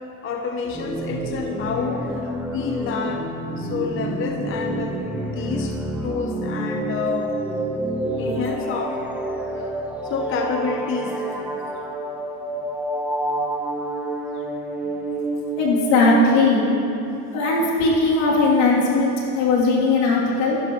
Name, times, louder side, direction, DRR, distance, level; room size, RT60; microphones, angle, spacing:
voice 1, 0.2-2.1 2.5-3.3 3.6-5.8 6.0-7.4 8.2-9.0 9.6-9.7 10.0-11.4, left 5 dB, 30° left, 3 dB, 0.7 m, -28 dB
sound 1, 0.7-16.9, right 1 dB, 5° right, 1.0 m, -28 dB
voice 2, 15.6-16.6 17.3-20.6, left 3 dB, 75° left, -5 dB, 3.2 m, -19 dB
15.0 x 12.0 x 3.2 m, 2.8 s
supercardioid pair, 130°, 40 cm